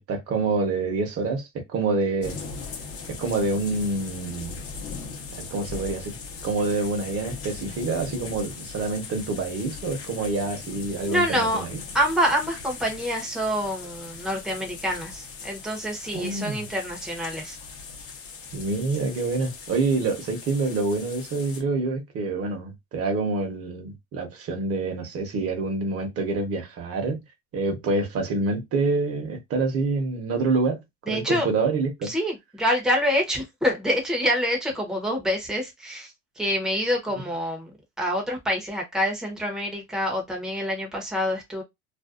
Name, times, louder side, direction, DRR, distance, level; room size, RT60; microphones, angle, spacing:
voice 1, 0.1-2.4 3.1-4.6 5.4-6.2 6.4-11.8 16.1-16.7 18.5-27.2 27.5-30.8 31.1-32.1, right 3 dB, 40° right, 0.9 m, -27 dB
sound 1, 2.2-21.6, left 5 dB, 40° left, 0.8 m, -39 dB
voice 2, 11.0-11.6 11.9-17.6 31.1-31.5 32.0-37.7 38.0-41.6, equal, ahead, 0.7 m, -26 dB
2.5 x 2.2 x 2.3 m
cardioid pair, 130°, 35 cm